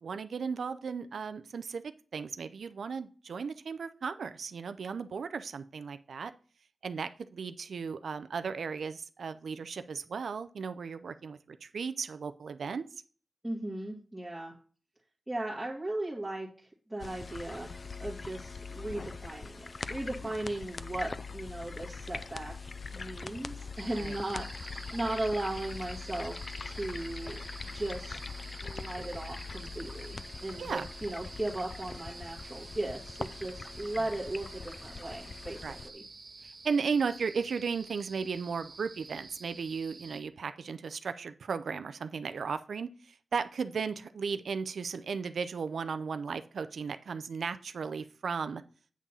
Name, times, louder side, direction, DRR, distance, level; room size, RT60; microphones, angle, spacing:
voice 1, 0.0-6.3 6.8-12.8 20.2-20.3 24.0-24.2 30.6-30.9 35.6-35.8 36.4-48.6, right 5 dB, 85° right, 11 dB, 0.4 m, -35 dB
voice 2, 13.4-14.5 15.3-17.7 18.0-22.5 22.9-27.4 27.7-28.2 28.6-35.6 35.8-36.0, right 1 dB, 5° right, -7 dB, 1.7 m, -37 dB
sound 1, 17.0-35.9, left 4 dB, 45° left, 0.4 m, -42 dB
sound 2, 23.8-40.2, right 3 dB, 45° right, 0.9 m, -49 dB
8.4 x 3.7 x 5.4 m, 0.41 s
wide cardioid pair, 100°, 0 cm